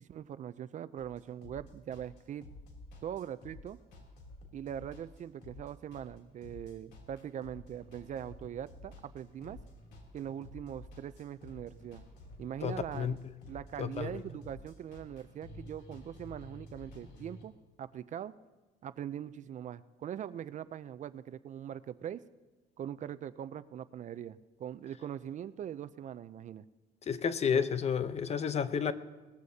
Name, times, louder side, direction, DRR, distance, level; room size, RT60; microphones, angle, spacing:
voice 1, 0.0-2.5 3.0-3.8 4.5-9.6 10.1-12.0 12.4-13.2 13.5-17.5 17.8-18.3 18.8-22.2 22.8-26.6 27.5-27.7, right 10 dB, 45° right, 14 dB, 0.5 m, -42 dB
sound 1, 1.0-17.4, left 1 dB, 90° left, 3.1 m, -52 dB
voice 2, 12.6-13.1 13.8-14.2 27.1-28.9, left 7 dB, 40° left, 12 dB, 0.8 m, -31 dB
20.5 x 14.5 x 2.8 m, 1.3 s
cardioid pair, 110°, 17 cm